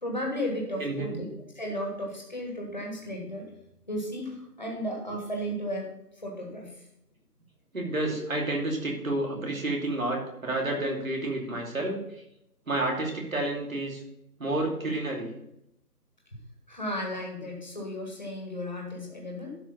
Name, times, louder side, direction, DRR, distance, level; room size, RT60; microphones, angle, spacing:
voice 1, 0.0-1.3 1.5-3.5 3.9-6.9 16.7-19.6, equal, 25° left, 0 dB, 1.6 m, -34 dB
voice 2, 0.8-1.2 7.7-12.0 12.7-14.0 14.4-15.3, right 2 dB, 55° right, 0 dB, 2.8 m, -30 dB
12.5 x 4.9 x 5.4 m, 0.81 s
figure-of-eight pair, 175°, 48 cm